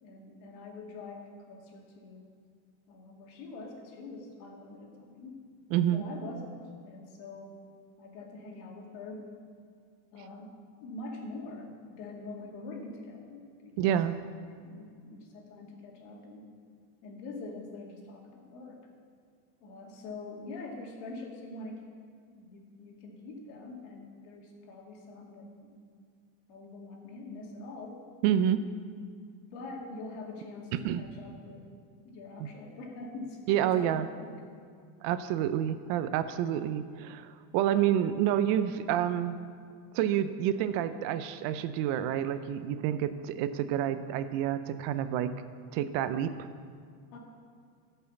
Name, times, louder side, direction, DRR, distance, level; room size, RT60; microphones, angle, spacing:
voice 1, 0.0-2.3 2.9-5.4 5.9-7.6 8.0-9.4 10.1-10.5 10.8-13.9 14.6-16.5 17.0-18.8 19.6-21.8 22.3-25.9 26.5-28.0 29.3-31.7 32.0-34.3 47.1-47.2, left 2 dB, 70° left, 0 dB, 2.3 m, -44 dB
voice 2, 5.7-6.0 13.8-14.2 28.2-28.7 30.7-31.0 32.4-32.5 33.5-34.1 35.0-39.4 39.9-45.3 45.7-46.5, right 10 dB, 70° right, 12 dB, 0.7 m, -28 dB
12.5 x 5.6 x 7.1 m, 2.2 s
cardioid pair, 140°, 44 cm